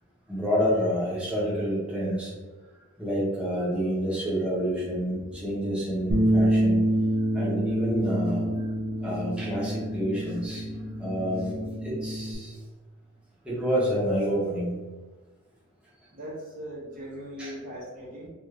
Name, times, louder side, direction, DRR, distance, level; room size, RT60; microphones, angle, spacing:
voice 1, 0.3-2.3 3.0-6.8 7.3-8.5 9.0-10.6 11.0-11.6 11.8-12.5 13.4-14.7 17.4-17.5, equal, 5° right, -8 dB, 0.8 m, -28 dB
sound 1, 4.6-12.1, left 2 dB, 40° left, 0.3 m, -44 dB
Bass guitar, 6.1-12.4, right 1 dB, 80° right, 0.6 m, -27 dB
voice 2, 16.1-18.3, equal, 40° right, -6 dB, 0.8 m, -39 dB
2.5 x 2.4 x 3.2 m, 1.3 s
head